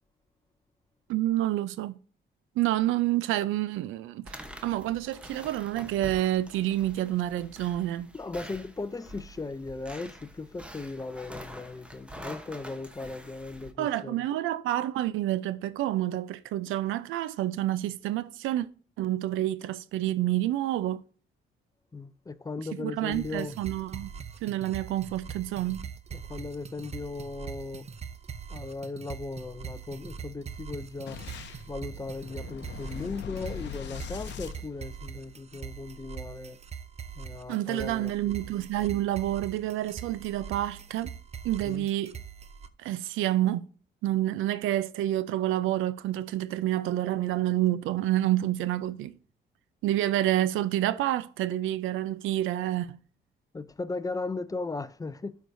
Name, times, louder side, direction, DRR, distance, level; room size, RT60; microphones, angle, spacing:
voice 1, 1.1-1.9 2.6-8.1 13.8-18.7 19.0-21.0 22.8-24.1 24.4-25.8 37.5-41.1 41.4-42.1 42.8-43.7 44.0-49.1 49.8-53.0, right 14 dB, 85° right, 0.5 m, -28 dB
sound 1, 4.2-13.7, equal, 5° right, 0.9 m, -46 dB
voice 2, 8.1-14.2 21.9-23.6 26.1-27.9 28.5-31.2 31.7-36.6 37.2-38.3 41.6-41.9 53.5-55.4, left 3 dB, 15° left, 0.5 m, -37 dB
sound 2, 23.1-42.7, right 7 dB, 35° right, 0.6 m, -42 dB
Boom, 31.1-35.4, left 7 dB, 65° left, 0.8 m, -41 dB
12.5 x 4.7 x 2.6 m
cardioid pair, 90°, 20 cm